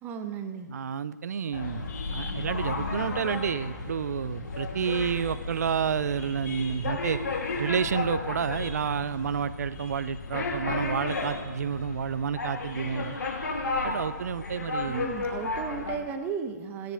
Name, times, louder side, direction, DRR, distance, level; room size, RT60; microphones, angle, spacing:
voice 1, 0.0-0.7 14.9-16.9, right 6 dB, 20° right, 8 dB, 1.1 m, -35 dB
voice 2, 0.7-7.2 7.6-13.2 13.8-15.1, right 7 dB, 60° right, 16 dB, 0.7 m, -30 dB
sound 1, 1.5-16.0, left 3 dB, 70° left, 3.3 m, -33 dB
sound 2, 2.4-15.4, left 3 dB, 55° left, 5.0 m, -52 dB
29.0 x 10.5 x 3.6 m, 1.3 s
figure-of-eight pair, 135°, 10 cm